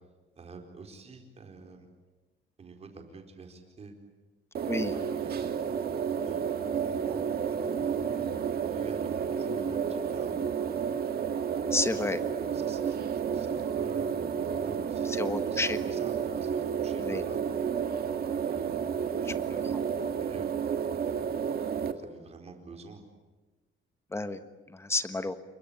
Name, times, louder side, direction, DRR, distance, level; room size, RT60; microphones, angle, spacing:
voice 1, 0.3-1.9 2.6-3.9 4.6-5.5 6.2-10.4 12.3-17.5 18.5-19.6 19.9-20.5 21.6-23.0, right 4 dB, 30° right, 3 dB, 4.5 m, -47 dB
sound 1, 4.5-21.9, right 7 dB, 50° right, 1.8 m, -31 dB
voice 2, 11.7-12.2 15.1-15.8 17.0-17.2 24.1-24.4 24.7-25.4, left 2 dB, 10° left, 10 dB, 1.4 m, -30 dB
28.5 x 23.0 x 8.8 m, 1.2 s
cardioid pair, 170°, 21 cm